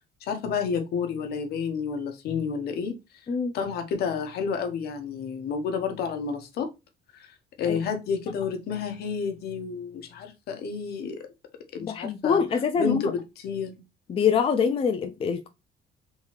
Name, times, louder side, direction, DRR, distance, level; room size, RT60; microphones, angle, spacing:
voice 1, 0.2-3.0 3.5-6.7 7.6-11.2 11.7-12.4 12.8-13.8, left 6 dB, 70° left, 1.0 m, -30 dB
voice 2, 11.8-13.1 14.1-15.5, left 6 dB, 35° left, 0.5 m, -25 dB
3.7 x 2.8 x 3.0 m
cardioid pair, 110°, 17 cm